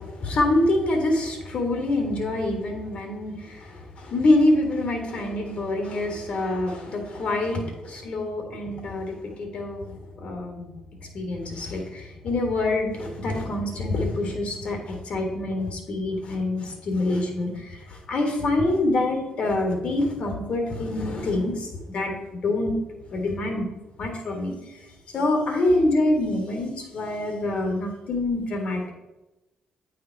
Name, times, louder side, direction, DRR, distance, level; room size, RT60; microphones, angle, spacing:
voice 1, 0.0-10.7 11.1-22.1 22.4-22.8 23.1-23.6 24.0-24.6 25.1-28.9, left 2 dB, 60° left, 2 dB, 1.8 m, -26 dB
8.6 x 3.6 x 4.6 m, 1.0 s
supercardioid pair, 70°, 2 cm